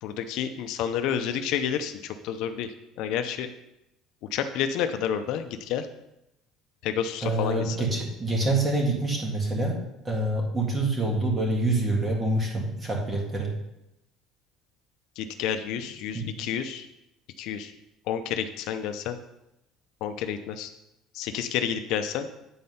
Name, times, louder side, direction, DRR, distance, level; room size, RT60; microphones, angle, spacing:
voice 1, 0.0-3.5 4.3-5.9 6.8-7.8 15.2-16.9 17.4-17.7 18.1-19.2 20.0-20.7 21.1-22.3, left 8 dB, 65° left, 8 dB, 0.6 m, -30 dB
voice 2, 7.2-9.8 10.1-13.5 16.1-16.2, right 2 dB, 15° right, -1 dB, 1.8 m, -26 dB
9.7 x 4.3 x 5.5 m, 0.87 s
cardioid pair, 165°, 0 cm